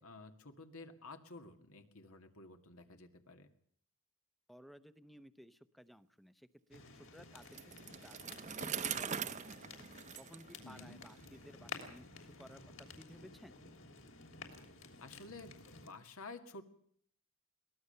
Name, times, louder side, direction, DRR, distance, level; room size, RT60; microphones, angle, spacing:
voice 1, 0.0-3.5 10.6-11.0 15.0-16.6, left 3 dB, 80° left, 6 dB, 2.1 m, -52 dB
voice 2, 4.5-9.6 10.2-13.6, equal, ahead, 13 dB, 0.8 m, -58 dB
sound 1, 6.7-15.9, left 4 dB, 60° left, 3.3 m, -52 dB
Bicycle, 7.4-11.2, right 7 dB, 35° right, 0.8 m, -42 dB
22.5 x 18.0 x 6.8 m, 0.62 s
head